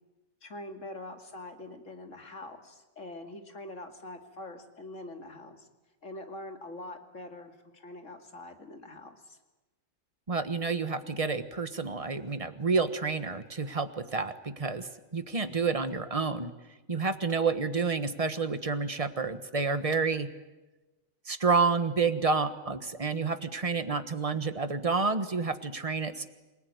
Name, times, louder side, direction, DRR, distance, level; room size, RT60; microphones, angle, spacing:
voice 1, 0.4-5.7 6.0-9.4, left 2 dB, 65° left, 5 dB, 2.8 m, -44 dB
voice 2, 10.3-16.5 16.9-20.3 21.3-26.3, right 4 dB, 25° right, 10 dB, 1.3 m, -29 dB
28.0 x 18.5 x 9.5 m, 1.1 s
omnidirectional pair, 1.4 m